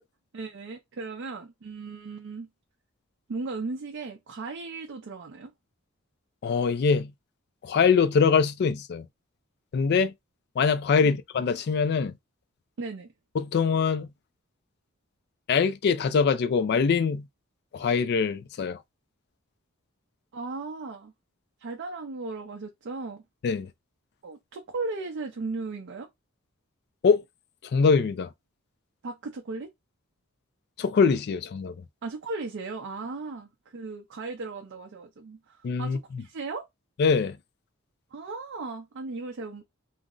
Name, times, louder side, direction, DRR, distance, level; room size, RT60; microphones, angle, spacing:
voice 1, 0.3-2.5 3.3-5.5 11.0-11.1 12.8-13.1 20.3-21.1 21.6-23.2 24.2-26.1 29.0-29.7 32.0-36.6 38.1-39.6, right 3 dB, 60° right, 0.5 m, -36 dB
voice 2, 6.4-7.1 7.6-9.1 9.7-10.1 10.6-12.1 13.3-14.1 15.5-17.3 17.7-18.8 23.4-23.7 27.0-27.2 27.7-28.3 30.8-31.7 35.6-36.2 37.0-37.4, left 5 dB, 50° left, 0.3 m, -23 dB
2.5 x 2.0 x 3.7 m
head